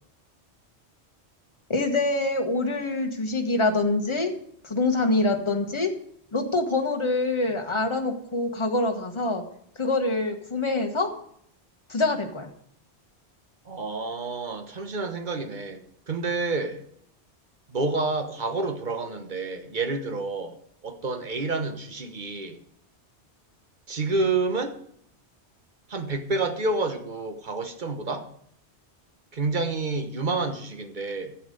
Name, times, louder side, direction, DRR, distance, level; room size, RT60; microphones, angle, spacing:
voice 1, 1.7-4.3 4.6-5.9 6.3-9.4 9.8-11.1 11.9-12.5, left 2 dB, 25° left, 1.5 m, -25 dB
voice 2, 13.7-16.8 17.7-20.5 20.8-22.6 23.9-24.8 25.9-28.3 29.3-31.3, right 3 dB, 45° right, 1.3 m, -29 dB
12.0 x 8.6 x 5.3 m
omnidirectional pair, 1.1 m